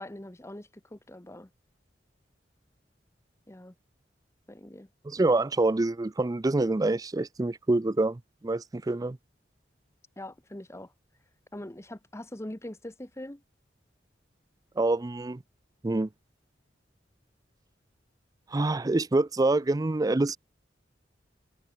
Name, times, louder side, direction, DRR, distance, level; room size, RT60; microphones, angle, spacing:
voice 1, 0.0-1.5 3.5-3.7 4.5-4.9 10.2-10.9 11.5-13.4, left 1 dB, 15° left, 1.1 m, -42 dB
voice 2, 5.1-9.2 14.8-15.4 15.8-16.1 18.5-20.4, right 2 dB, 20° right, 0.4 m, -26 dB
head